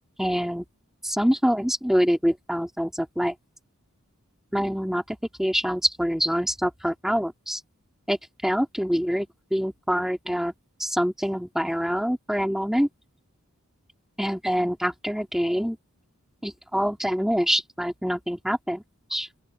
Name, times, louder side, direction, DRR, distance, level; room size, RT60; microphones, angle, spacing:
voice 1, 0.2-0.6 1.0-3.3 4.5-7.6 8.1-8.2 8.4-10.5 10.8-12.9 14.2-15.8 16.4-18.8 19.1-19.3, equal, ahead, 2.1 m, -25 dB
open air
head